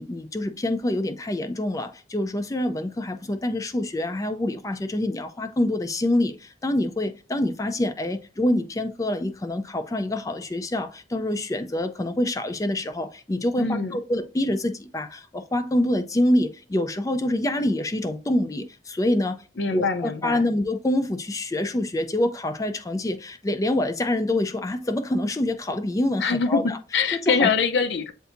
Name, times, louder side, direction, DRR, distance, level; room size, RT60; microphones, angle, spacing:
voice 1, 0.0-19.4 19.7-26.8 27.1-27.5, left 1 dB, 20° left, 0.4 m, -26 dB
voice 2, 13.6-14.0 19.6-20.5 26.2-28.1, left 5 dB, 70° left, 0.6 m, -24 dB
7.9 x 2.6 x 2.5 m
head